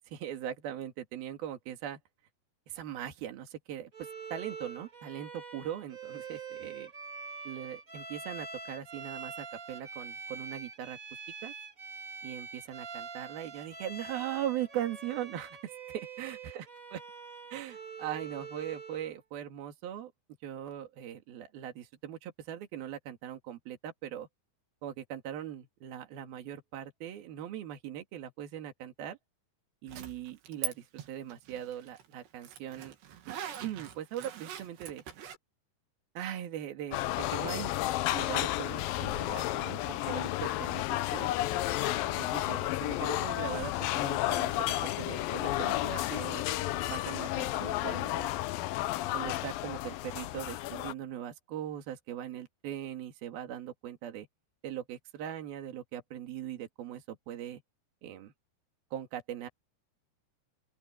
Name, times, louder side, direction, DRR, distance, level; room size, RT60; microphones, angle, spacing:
voice 1, 0.1-2.0 2.7-3.9 4.3-6.9 7.5-11.0 11.4-11.5 12.2-15.6 16.2-16.7 16.9-17.0 17.5-20.1 20.4-24.3 24.8-29.2 29.8-33.0 33.3-35.0 36.2-37.7 38.1-40.9 41.1-41.3 42.2-46.4 46.9-48.3 49.1-54.3 54.6-57.6 58.0-58.3 58.9-59.5, right 11 dB, 65° right, 3.9 m, -40 dB
Bowed string instrument, 3.9-19.2, right 5 dB, 35° right, 1.3 m, -44 dB
Zipper (clothing), 29.9-30.7 31.0-35.4, right 8 dB, 90° right, 4.5 m, -42 dB
sound 1, 36.9-50.9, left 15 dB, 75° left, 2.2 m, -32 dB
open air
omnidirectional pair, 4.7 m